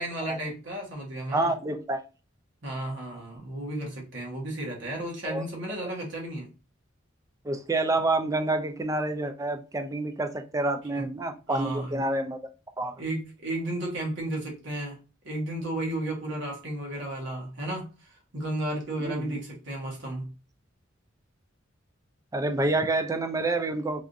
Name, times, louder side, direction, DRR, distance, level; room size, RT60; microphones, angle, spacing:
voice 1, 0.0-1.5 2.6-6.5 10.9-11.1 11.5-12.0 13.0-15.0 15.2-20.3, right 1 dB, 60° right, 1.2 m, -33 dB
voice 2, 1.3-2.0 5.2-5.4 7.4-12.4 12.8-12.9 19.0-19.4 22.3-24.0, right 2 dB, 15° right, 0.3 m, -28 dB
3.4 x 2.4 x 2.6 m
head